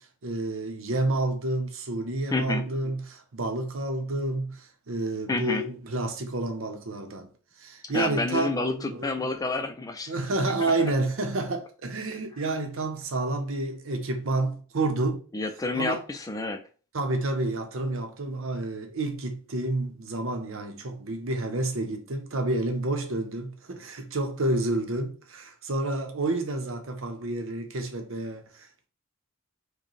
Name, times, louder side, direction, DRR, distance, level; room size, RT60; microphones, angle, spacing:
voice 1, 0.0-7.3 7.6-9.3 10.1-15.2 15.7-16.0 16.9-28.9, right 2 dB, 75° right, 0.8 m, -29 dB
voice 2, 2.3-2.7 5.3-5.6 7.8-10.1 15.3-16.6, left 3 dB, 15° left, 0.4 m, -29 dB
4.9 x 2.2 x 3.1 m
head